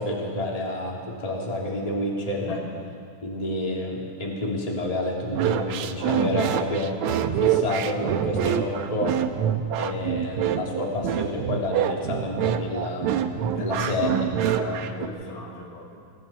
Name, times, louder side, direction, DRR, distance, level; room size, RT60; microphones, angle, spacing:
voice 1, 0.0-2.6 3.2-7.0 7.4-9.2 9.7-14.1 14.4-15.3, left 1 dB, 10° left, -2 dB, 2.8 m, -29 dB
sound 1, 5.3-15.1, right 10 dB, 75° right, 2.1 m, -25 dB
voice 2, 13.5-16.0, left 2 dB, 85° left, -2 dB, 4.5 m, -39 dB
28.5 x 21.0 x 4.4 m, 2.2 s
omnidirectional pair, 3.6 m